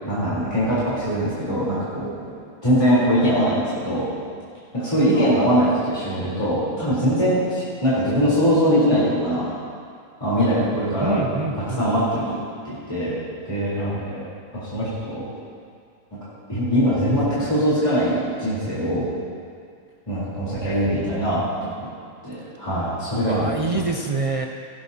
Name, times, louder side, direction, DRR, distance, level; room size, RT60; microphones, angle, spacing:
voice 1, 0.0-2.3 2.6-4.1 4.7-9.5 10.2-11.2 11.8-13.2 13.5-14.2 14.5-15.3 16.1-19.1 20.1-21.9 22.2-23.8, equal, 20° left, -10 dB, 3.7 m, -22 dB
voice 2, 5.1-5.7 11.0-12.1 23.2-24.5, right 3 dB, 60° right, 1 dB, 0.3 m, -27 dB
19.0 x 11.0 x 2.8 m, 2.2 s
omnidirectional pair, 1.6 m